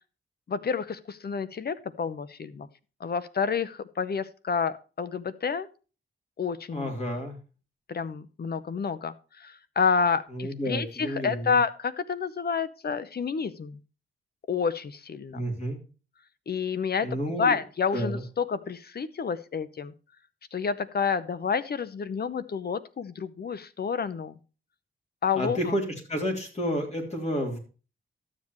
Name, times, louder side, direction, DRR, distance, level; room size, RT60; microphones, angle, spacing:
voice 1, 0.5-2.7 3.0-5.7 6.4-6.9 7.9-13.8 14.5-15.4 16.5-17.1 17.4-19.9 20.5-24.4 25.2-25.7, left 6 dB, 50° left, 15 dB, 0.8 m, -29 dB
voice 2, 6.7-7.4 10.3-11.6 15.3-15.8 17.0-17.6 17.9-18.2 25.3-25.8 26.1-27.6, equal, 30° left, 1 dB, 3.2 m, -30 dB
12.5 x 7.5 x 3.1 m, 0.34 s
cardioid pair, 85°, 21 cm